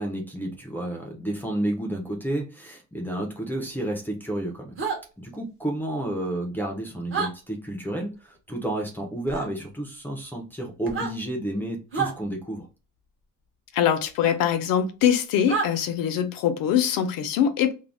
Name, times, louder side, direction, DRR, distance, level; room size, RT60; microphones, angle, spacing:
voice 1, 0.0-4.7 5.2-12.7, right 1 dB, 5° left, 0.4 m, -31 dB
sound 1, 4.8-5.0 7.1-7.3 9.3-9.5 10.8-11.1 11.9-12.1 14.2-14.3 15.5-15.7, right 5 dB, 35° right, 0.7 m, -28 dB
voice 2, 13.7-17.7, left 9 dB, 75° left, 0.6 m, -23 dB
2.5 x 2.1 x 3.2 m
cardioid pair, 180°, 34 cm